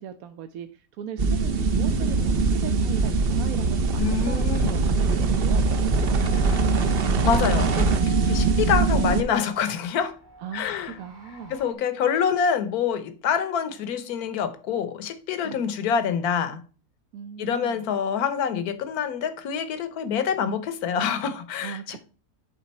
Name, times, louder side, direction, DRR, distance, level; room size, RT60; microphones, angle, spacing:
voice 1, 0.0-6.2 10.4-11.6 15.4-15.6 17.1-17.8 21.6-22.0, right 8 dB, 75° right, 1.1 m, -39 dB
sound 1, 1.2-9.2, right 3 dB, 50° right, 0.8 m, -22 dB
voice 2, 4.0-4.7 6.4-6.6 7.2-7.9 8.3-10.2 10.5-11.0 11.5-16.6 17.4-22.0, left 7 dB, 80° left, 1.3 m, -26 dB
sound 2, 5.4-11.7, right 3 dB, 15° right, 1.0 m, -43 dB
9.4 x 3.9 x 4.2 m
omnidirectional pair, 1.6 m